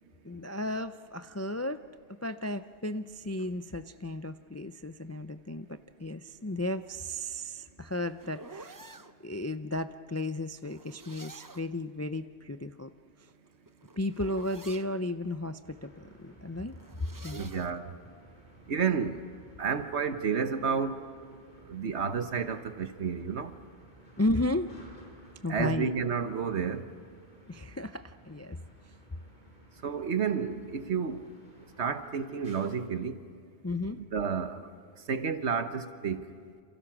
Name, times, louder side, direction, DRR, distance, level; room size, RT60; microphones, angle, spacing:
voice 1, 0.2-1.8 2.2-8.8 9.2-12.9 13.2-13.3 14.0-16.7 17.2-17.5 24.2-24.7 25.4-25.9 27.5-28.6 33.6-34.0, left 1 dB, 25° left, 10 dB, 0.3 m, -34 dB
sound 1, 7.3-9.1 10.6-11.8 13.2-14.9 16.7-17.8, right 3 dB, 20° right, 0.6 m, -49 dB
sound 2, 15.6-32.7, right 1 dB, 40° left, 5.2 m, -56 dB
voice 2, 17.3-17.9 18.7-19.2 19.6-21.0 21.7-23.6 25.5-26.9 29.8-31.3 31.8-33.2 33.9-34.6 35.1-36.2, right 6 dB, 70° right, 9 dB, 1.4 m, -31 dB
28.5 x 27.5 x 6.1 m, 2.1 s
omnidirectional pair, 1.2 m